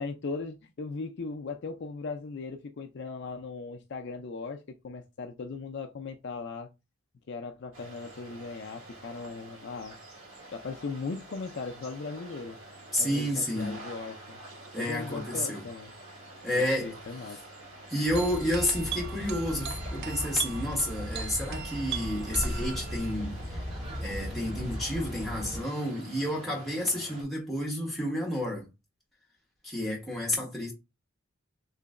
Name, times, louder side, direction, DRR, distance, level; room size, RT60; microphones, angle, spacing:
voice 1, 0.0-6.7 7.3-10.0 10.5-12.6 13.0-14.4 14.8-15.9 16.5-17.4, left 4 dB, 55° left, 0.4 m, -38 dB
sound 1, 7.7-27.2, right 1 dB, 80° right, 1.9 m, -48 dB
voice 2, 12.9-13.8 14.7-15.6 16.4-17.0 17.2-17.4 17.9-23.6 24.0-28.7 29.6-30.7, left 1 dB, ahead, 1.3 m, -30 dB
sound 2, 18.1-25.6, equal, 30° right, 2.0 m, -37 dB
sound 3, 18.2-23.1, right 9 dB, 50° right, 0.4 m, -40 dB
3.2 x 3.0 x 3.7 m
head